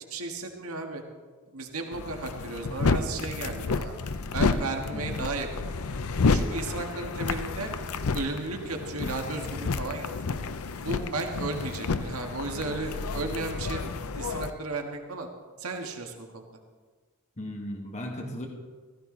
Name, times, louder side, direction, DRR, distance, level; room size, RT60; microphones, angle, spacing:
voice 1, 0.1-1.0 1.5-3.9 4.3-5.7 6.3-7.7 8.1-10.4 10.8-15.3 15.6-16.4, right 3 dB, 80° right, 3 dB, 1.6 m, -34 dB
sound 1, 1.9-14.5, left 4 dB, 85° left, 0.6 m, -30 dB
voice 2, 17.4-18.5, left 1 dB, 35° left, 1 dB, 1.7 m, -36 dB
15.5 x 14.5 x 3.9 m, 1.5 s
head